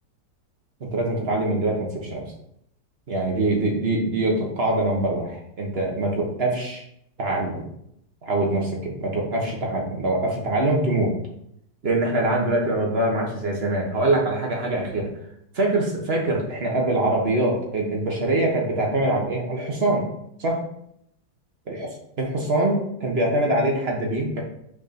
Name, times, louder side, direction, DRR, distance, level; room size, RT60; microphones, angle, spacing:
voice 1, 0.8-2.3 3.1-6.8 7.2-7.6 8.2-11.1 11.8-15.1 15.5-20.1 20.4-20.6 21.7-21.9 22.2-24.4, right 2 dB, 35° right, 0 dB, 1.3 m, -24 dB
6.2 x 3.9 x 4.2 m, 0.74 s
omnidirectional pair, 2.0 m